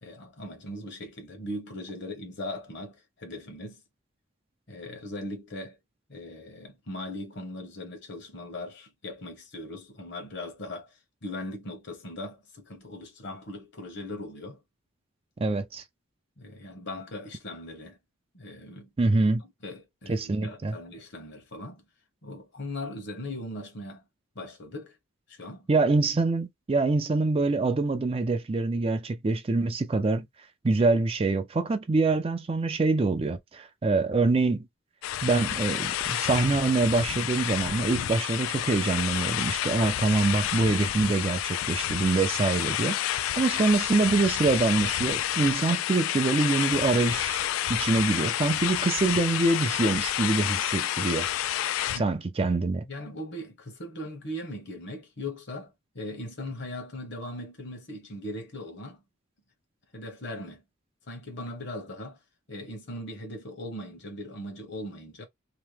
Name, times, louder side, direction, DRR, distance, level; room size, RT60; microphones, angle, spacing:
voice 1, 0.0-3.8 4.7-5.8 6.1-14.6 16.4-18.0 18.3-18.9 19.6-21.8 22.2-24.0 24.3-25.0 25.3-25.7 51.9-52.1 52.8-59.0 59.9-60.6 61.1-62.2 62.5-65.2, left 1 dB, 60° left, 1.1 m, -39 dB
voice 2, 15.4-15.8 19.0-19.4 20.1-20.8 25.7-30.3 30.6-34.7 35.2-43.0 43.4-47.4 47.7-51.3 51.9-52.8, right 3 dB, 30° right, 0.4 m, -25 dB
sound 1, 35.0-52.0, left 12 dB, 80° left, 0.3 m, -29 dB
2.9 x 2.1 x 3.3 m
head